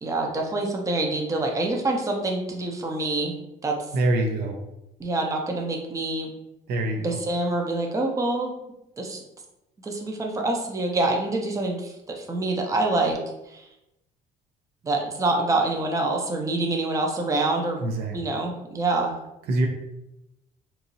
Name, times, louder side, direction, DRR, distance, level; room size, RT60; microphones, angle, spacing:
voice 1, 0.0-3.3 3.6-3.8 5.0-6.3 7.0-8.5 9.0-9.2 9.8-13.2 13.5-13.7 14.8-17.8 18.1-19.1, right 2 dB, 20° right, 1 dB, 0.5 m, -26 dB
voice 2, 3.9-4.6 6.7-7.2 17.8-18.1 19.5-19.7, right 1 dB, 70° right, 2 dB, 0.6 m, -24 dB
3.0 x 2.6 x 2.6 m, 0.89 s
cardioid pair, 110°, 17 cm